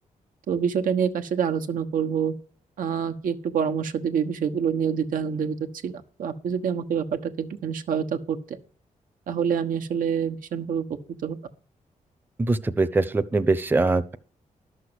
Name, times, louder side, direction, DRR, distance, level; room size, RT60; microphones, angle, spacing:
voice 1, 0.5-2.3 2.8-5.6 5.8-8.4 9.3-10.8 11.2-11.4, right 7 dB, 85° right, 6 dB, 1.3 m, -26 dB
voice 2, 12.4-14.2, right 3 dB, 15° right, 11 dB, 0.7 m, -22 dB
12.0 x 6.5 x 8.0 m, 0.41 s
cardioid pair, 110°, 14 cm